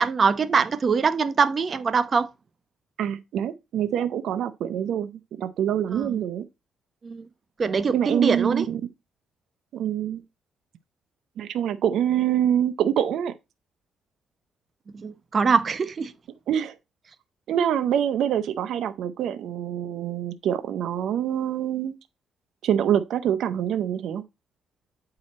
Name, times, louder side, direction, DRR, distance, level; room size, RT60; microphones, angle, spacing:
voice 1, 0.0-2.3 5.9-6.2 7.0-7.3 7.6-8.7 14.9-16.1, right 5 dB, 40° right, 0.7 m, -23 dB
voice 2, 3.0-5.1 5.4-6.4 7.9-8.8 9.7-10.2 11.4-13.3 16.5-16.8 17.5-21.9 22.6-24.2, right 9 dB, 75° right, 0.5 m, -25 dB
8.4 x 4.8 x 4.1 m
cardioid pair, 90°, 0 cm